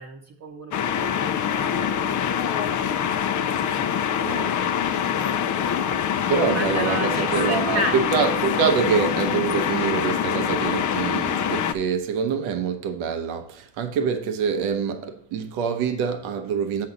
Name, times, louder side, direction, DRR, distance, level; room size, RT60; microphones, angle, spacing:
voice 1, 0.0-2.9 6.3-8.1, right 2 dB, 35° right, 0.9 m, -33 dB
sound 1, 0.7-11.7, left 8 dB, 40° left, 0.6 m, -24 dB
voice 2, 4.2-4.6 4.9-5.1 6.3-16.9, right 6 dB, 85° right, 1.1 m, -25 dB
7.7 x 6.4 x 4.0 m
cardioid pair, 125°, 47 cm